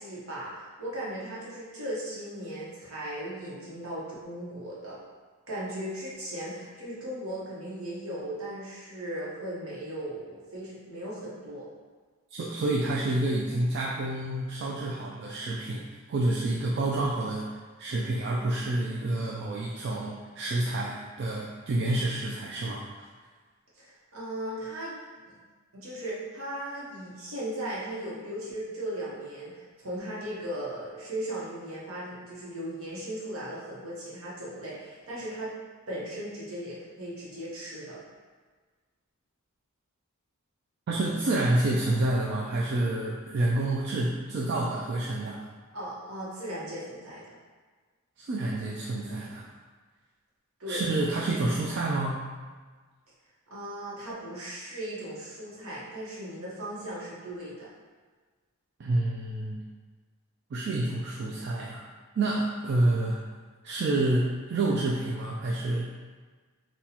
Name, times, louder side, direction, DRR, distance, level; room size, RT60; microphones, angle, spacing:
voice 1, 0.0-5.0 5.5-11.7 23.7-24.9 25.3-25.4 25.7-35.5 35.9-38.0 45.7-47.4 50.6-50.9 53.5-57.7, right 1 dB, 70° right, -7 dB, 1.0 m, -37 dB
voice 2, 12.3-17.5 17.8-22.8 40.9-45.4 48.2-49.5 50.7-52.3 58.8-59.6 60.5-61.8 62.2-63.2 63.6-65.9, right 2 dB, 50° right, -3 dB, 0.3 m, -28 dB
4.0 x 2.3 x 2.8 m, 1.4 s
head